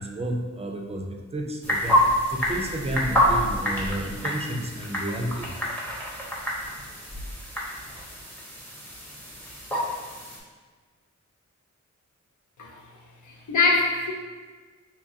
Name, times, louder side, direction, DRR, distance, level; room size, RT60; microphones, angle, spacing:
voice 1, 0.0-5.5, right 1 dB, 20° right, 2 dB, 0.4 m, -31 dB
sound 1, 1.6-10.4, equal, 5° left, 0.7 m, -27 dB
voice 2, 13.3-14.1, left 3 dB, 85° left, 0 dB, 0.7 m, -23 dB
3.7 x 3.0 x 2.6 m, 1.4 s
wide cardioid pair, 100°, 29 cm